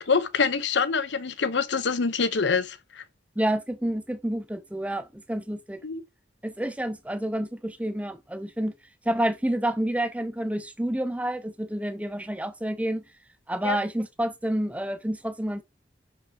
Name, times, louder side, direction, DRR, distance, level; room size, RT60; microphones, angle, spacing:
voice 1, 0.0-3.0 5.8-6.0 13.6-13.8, left 5 dB, 70° left, 0.7 m, -25 dB
voice 2, 3.4-5.8 6.4-8.7 9.1-13.0 13.5-15.6, right 1 dB, 5° right, 0.5 m, -29 dB
5.7 x 5.4 x 3.8 m
head